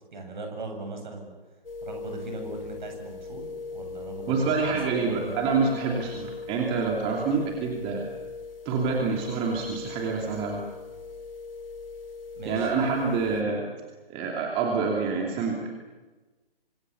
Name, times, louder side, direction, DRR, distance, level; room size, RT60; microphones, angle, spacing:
voice 1, 0.1-1.3 1.8-4.8 5.0-5.5 8.9-9.1 12.3-12.7, right 2 dB, 50° right, 4 dB, 7.7 m, -39 dB
sound 1, 1.6-13.4, left 4 dB, 70° left, 3.8 m, -40 dB
voice 2, 4.3-8.1 8.6-10.6 12.4-13.7 14.1-15.7, right 4 dB, 20° right, 0 dB, 2.7 m, -27 dB
28.5 x 26.0 x 7.1 m, 1.2 s
figure-of-eight pair, 140°, 29 cm